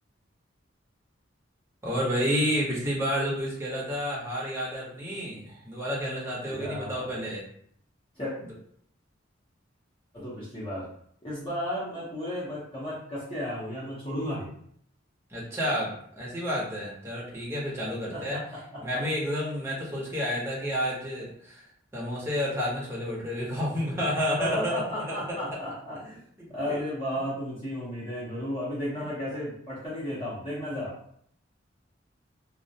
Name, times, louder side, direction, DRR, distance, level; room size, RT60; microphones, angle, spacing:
voice 1, 1.8-7.4 15.3-18.4 18.8-21.6 21.9-24.8 25.1-25.4 26.0-26.8 29.0-29.1, equal, 15° right, -6 dB, 0.7 m, -30 dB
voice 2, 6.5-7.2 8.2-8.3 10.1-10.9 11.2-14.5 18.1-18.6 18.9-19.0 24.4-26.0 26.5-30.9, equal, 30° left, -9 dB, 0.7 m, -33 dB
2.3 x 2.0 x 2.7 m, 0.65 s
head